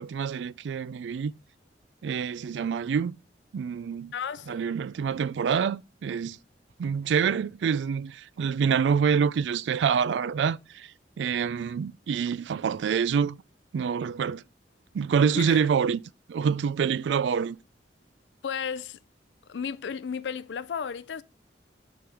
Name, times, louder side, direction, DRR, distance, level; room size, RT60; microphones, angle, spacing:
voice 1, 0.0-1.3 2.0-3.2 3.5-4.1 4.5-6.4 6.8-10.9 11.2-13.4 13.7-14.4 14.9-16.0 16.3-17.6, right 6 dB, 90° right, 0.3 m, -26 dB
voice 2, 4.1-4.7 15.3-15.6 18.4-19.0 19.5-21.2, left 7 dB, 80° left, 0.4 m, -33 dB
6.5 x 6.1 x 4.9 m
head